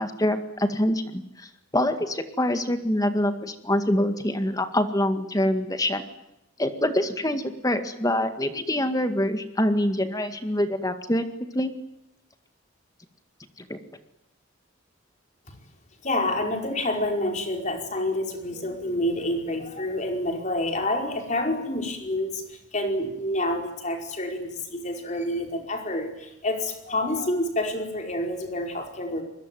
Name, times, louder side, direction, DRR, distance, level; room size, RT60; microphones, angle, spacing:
voice 1, 0.0-6.0 6.6-11.2 11.5-11.7 13.7-13.8, left 1 dB, 20° left, 8 dB, 2.0 m, -25 dB
voice 2, 16.0-29.2, left 1 dB, 35° left, 3 dB, 5.0 m, -28 dB
25.5 x 21.5 x 9.3 m, 0.85 s
head